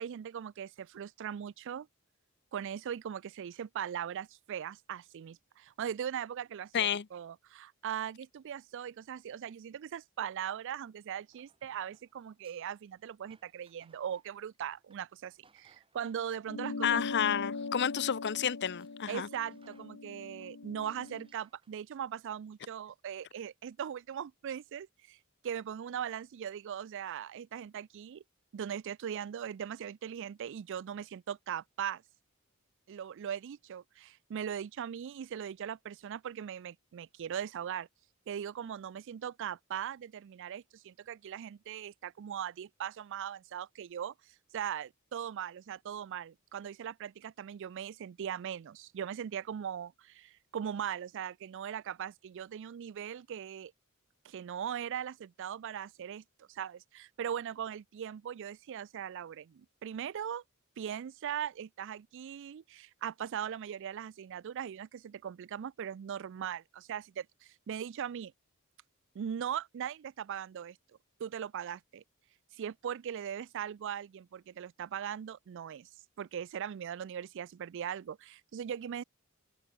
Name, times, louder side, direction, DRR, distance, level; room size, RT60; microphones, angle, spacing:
voice 1, 0.0-1.9 2.5-17.0 19.1-25.2 25.4-28.2 28.5-32.0 32.9-37.9 38.3-44.1 44.5-53.7 54.2-60.4 60.8-68.3 69.1-70.8 71.2-72.0 72.5-75.9 76.2-79.0, right 9 dB, 60° right, 0.4 m, -39 dB
voice 2, 6.7-7.1 16.8-19.3, left 8 dB, 55° left, 0.6 m, -30 dB
sound 1, 10.8-16.3 16.6-19.2 19.5-21.8, right 4 dB, 25° right, 6.6 m, -68 dB
sound 2, 16.5-21.3, left 3 dB, 85° left, 1.0 m, -40 dB
head